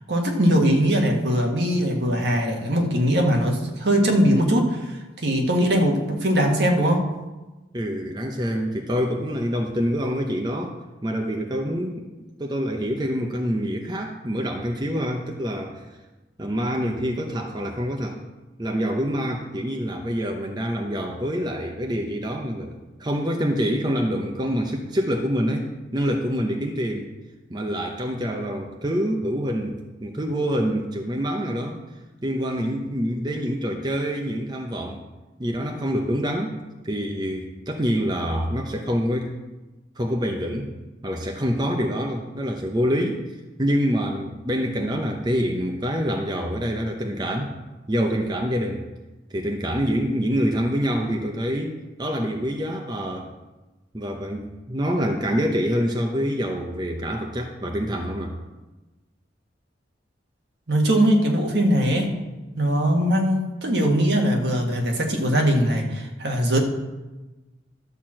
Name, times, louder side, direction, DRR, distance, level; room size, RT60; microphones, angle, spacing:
voice 1, 0.0-7.0 60.7-62.1 62.5-66.6, equal, 65° right, 2 dB, 1.6 m, -21 dB
voice 2, 7.7-10.7 11.0-12.1 12.4-15.9 16.4-18.2 18.6-27.1 27.5-31.8 32.2-35.0 35.4-36.5 36.8-39.3 40.0-40.7 41.0-43.2 43.6-47.5 47.9-48.9 49.3-53.3 53.9-58.4, equal, 25° right, 2 dB, 0.8 m, -26 dB
12.5 x 4.4 x 7.5 m, 1.1 s
head